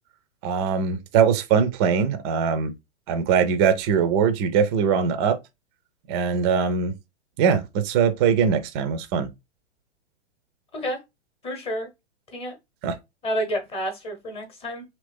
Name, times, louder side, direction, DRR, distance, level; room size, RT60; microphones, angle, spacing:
voice 1, 0.4-2.7 3.1-5.4 6.1-6.9 7.4-9.3 12.8-12.9, right 6 dB, 25° right, 0.4 m, -21 dB
voice 2, 11.4-11.9 12.3-12.5 13.2-14.8, equal, 15° left, 0.9 m, -29 dB
2.9 x 2.6 x 3.4 m
hypercardioid pair, 125°, 35 cm